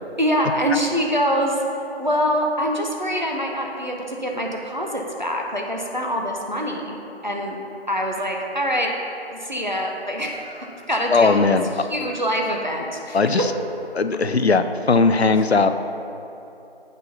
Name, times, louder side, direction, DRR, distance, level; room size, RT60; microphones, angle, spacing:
voice 1, 0.2-1.6 2.0-7.0 7.2-7.6 7.9-8.9 9.3-11.6 11.9-13.2, equal, 45° right, 0 dB, 0.7 m, -24 dB
voice 2, 11.1-11.6 13.1-13.5 13.9-15.7, left 4 dB, 75° left, 9 dB, 0.5 m, -18 dB
8.1 x 4.1 x 5.7 m, 2.9 s
figure-of-eight pair, 175°, 32 cm